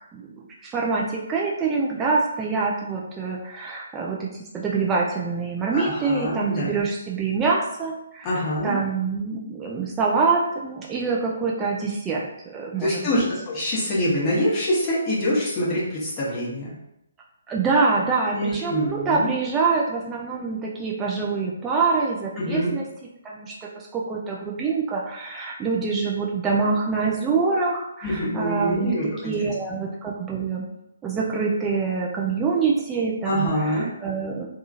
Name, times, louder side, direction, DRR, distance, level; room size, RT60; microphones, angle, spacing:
voice 1, 0.1-4.3 4.5-13.3 13.6-13.7 17.5-22.8 23.2-28.9 29.2-30.6 31.0-34.5, right 4 dB, 15° right, -3 dB, 0.3 m, -25 dB
voice 2, 5.7-6.8 8.2-8.8 12.8-16.7 18.3-19.3 22.4-22.7 28.0-29.8 33.2-33.9, left 1 dB, 25° left, -8 dB, 1.0 m, -25 dB
2.8 x 2.3 x 2.5 m, 0.81 s
figure-of-eight pair, 135°, 0 cm